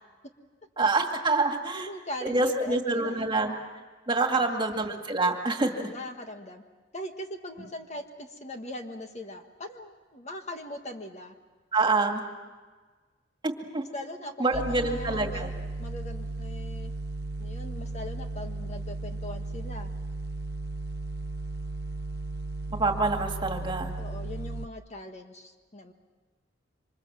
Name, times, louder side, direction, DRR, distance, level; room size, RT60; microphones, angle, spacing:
voice 1, 0.8-1.9 2.2-3.5 4.1-5.9 11.7-12.2 13.4-13.8 14.4-15.5 22.8-23.9, right 3 dB, 25° right, 3 dB, 2.2 m, -26 dB
voice 2, 1.7-3.2 4.3-4.5 5.6-6.6 6.9-11.3 13.9-15.5 15.8-16.9 17.4-19.9 24.0-25.9, left 1 dB, 35° left, 5 dB, 1.6 m, -40 dB
sound 1, 14.5-24.7, right 2 dB, 55° right, 0.7 m, -35 dB
27.0 x 25.5 x 7.5 m, 1.3 s
head